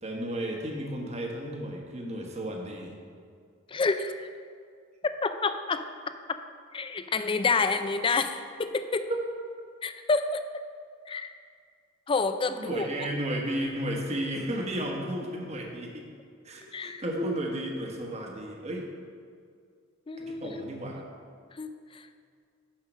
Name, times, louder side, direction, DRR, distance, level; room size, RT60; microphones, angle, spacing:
voice 1, 0.0-3.0 9.1-9.2 12.5-16.1 16.4-18.9 20.2-21.0, right 1 dB, 35° right, 1 dB, 1.2 m, -33 dB
voice 2, 3.7-4.3 5.0-5.8 6.7-9.1 9.8-10.4 11.1-11.3 12.1-12.9 16.7-17.0 20.1-20.6 21.5-22.1, left 4 dB, 25° left, 9 dB, 0.4 m, -28 dB
7.4 x 5.7 x 6.1 m, 2.1 s
head